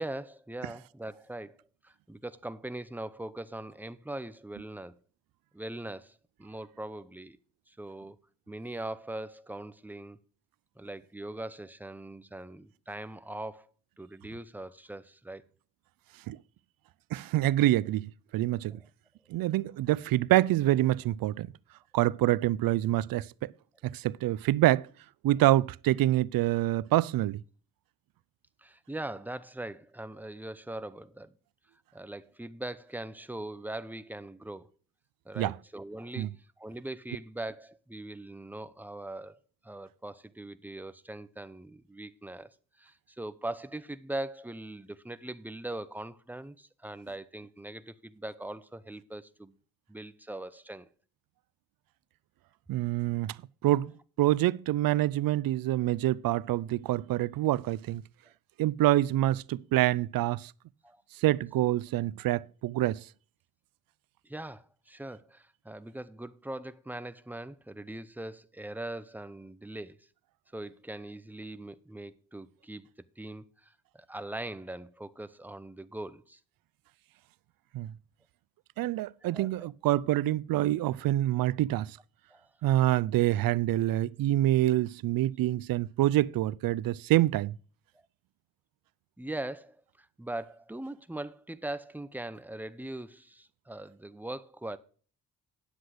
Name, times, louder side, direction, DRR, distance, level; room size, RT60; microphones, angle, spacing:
voice 1, 0.0-1.6 1.8-5.0 5.5-7.4 7.7-8.2 8.5-10.2 10.8-13.7 14.0-15.4 18.7-18.8 28.6-31.3 31.9-34.7 35.3-49.6 49.9-50.9 60.8-61.0 64.2-70.1 70.5-72.9 73.2-76.4 79.2-79.5 82.3-82.5 89.2-94.8, right 1 dB, 5° right, 0.7 m, -41 dB
voice 2, 17.1-18.8 19.3-21.5 21.9-23.5 23.8-24.9 25.2-27.4 35.4-35.5 36.2-36.3 52.7-53.4 53.6-58.0 58.6-60.5 61.2-63.0 77.7-77.9 78.8-82.0 82.6-87.5, right 15 dB, 80° right, 0.5 m, -26 dB
10.0 x 7.8 x 5.0 m
cardioid pair, 90°, 34 cm